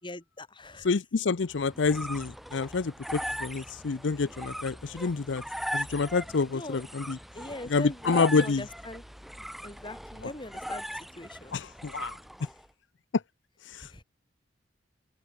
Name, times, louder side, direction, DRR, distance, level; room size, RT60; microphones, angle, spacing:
voice 1, 0.0-0.9 6.5-6.8 7.3-9.0 9.6-11.6 13.8-14.0, left 1 dB, 25° left, 4.9 m, -41 dB
voice 2, 0.8-5.4 5.7-7.2 7.7-8.6 11.5-12.2 13.6-14.0, left 4 dB, 75° left, 0.6 m, -28 dB
sound 1, 1.5-12.7, equal, ahead, 6.3 m, -39 dB
open air
head